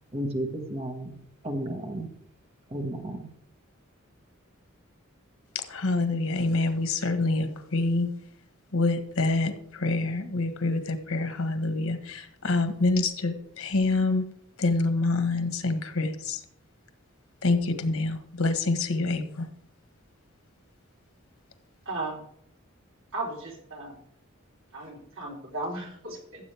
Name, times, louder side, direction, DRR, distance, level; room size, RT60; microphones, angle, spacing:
voice 1, 0.1-1.2 1.4-2.1 2.7-3.3, right 1 dB, 30° right, 3 dB, 1.6 m, -32 dB
voice 2, 5.7-8.1 8.7-14.3 14.6-16.4 17.4-19.5, left 2 dB, 90° left, 9 dB, 1.4 m, -26 dB
voice 3, 21.9-22.3 23.1-24.0 24.7-26.5, right 2 dB, 70° right, -2 dB, 4.0 m, -36 dB
15.0 x 7.7 x 3.5 m, 0.70 s
head